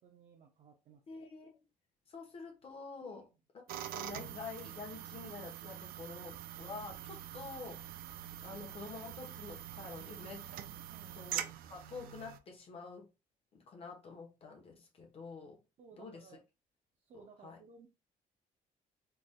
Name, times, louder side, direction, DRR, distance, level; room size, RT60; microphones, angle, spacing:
voice 1, 0.0-1.2 3.0-3.3 10.9-11.2 15.8-16.4 17.0-17.9, right 5 dB, 50° right, 0.7 m, -58 dB
voice 2, 1.1-1.6 2.1-3.3 3.5-3.6 3.9-8.0 8.4-10.5 11.1-13.1 13.5-15.6 16.0-16.3 17.1-17.6, left 4 dB, 40° left, 1.1 m, -48 dB
sound 1, 3.7-12.4, right 11 dB, 75° right, 0.5 m, -45 dB
sound 2, 6.5-11.6, right 4 dB, 75° left, 1.3 m, -58 dB
4.0 x 3.3 x 2.2 m
cardioid pair, 135°, 15 cm